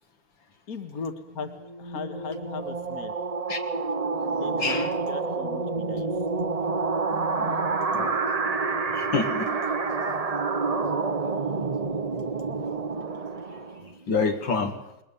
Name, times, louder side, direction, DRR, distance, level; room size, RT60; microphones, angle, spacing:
voice 1, 0.7-1.5 1.8-3.1 4.4-6.1, left 5 dB, 50° left, 8 dB, 2.2 m, -37 dB
sound 1, 1.3-14.0, right 4 dB, 35° right, 0.6 m, -28 dB
voice 2, 4.6-4.9 7.1-7.6 7.9-8.2 8.4-8.5 8.9-9.5 14.1-14.8, left 4 dB, 70° left, 5 dB, 2.7 m, -28 dB
21.5 x 20.5 x 7.2 m, 0.87 s
omnidirectional pair, 2.1 m